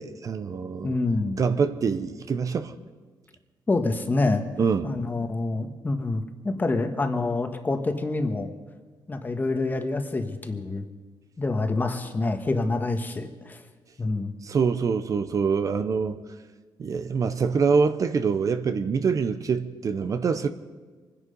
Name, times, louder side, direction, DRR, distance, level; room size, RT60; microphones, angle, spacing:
voice 1, 0.0-1.0 1.4-2.7 4.6-4.9 14.4-16.2 16.8-20.5, right 5 dB, 45° right, 10 dB, 0.7 m, -25 dB
voice 2, 0.8-1.4 3.7-4.4 4.8-8.5 9.1-10.8 11.4-13.6 14.0-14.3, left 2 dB, 25° left, 6 dB, 1.4 m, -27 dB
24.5 x 10.0 x 5.4 m, 1.4 s
cardioid pair, 125°, 8 cm